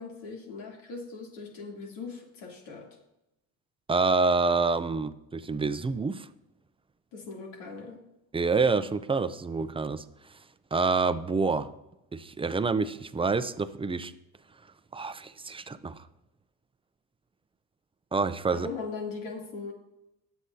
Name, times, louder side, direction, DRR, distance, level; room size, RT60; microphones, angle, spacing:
voice 1, 0.0-2.9 7.1-8.0 18.5-19.7, left 4 dB, 75° left, -1 dB, 3.1 m, -39 dB
voice 2, 3.9-6.3 8.3-10.0 10.7-11.7 12.1-14.1 14.9-16.0 18.1-18.7, right 4 dB, 15° right, 12 dB, 0.5 m, -27 dB
20.0 x 8.0 x 2.8 m, 0.91 s
supercardioid pair, 95°, 44 cm